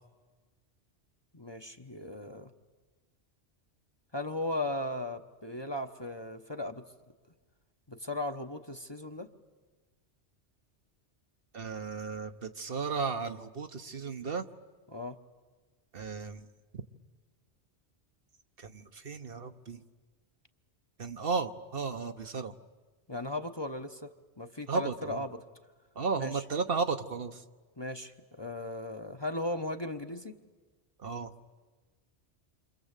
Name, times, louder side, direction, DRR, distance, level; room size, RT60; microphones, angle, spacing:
voice 1, 1.3-2.5 4.1-6.8 7.9-9.3 14.9-15.2 23.1-25.4 26.2-26.3 27.8-30.3, left 1 dB, 25° left, 6 dB, 1.0 m, -37 dB
voice 2, 11.5-14.4 15.9-16.5 18.6-19.8 21.0-22.5 24.7-25.2 25.9-27.4 31.0-31.3, right 5 dB, 55° right, 7 dB, 1.2 m, -34 dB
28.5 x 25.5 x 8.2 m, 1.3 s
omnidirectional pair, 1.2 m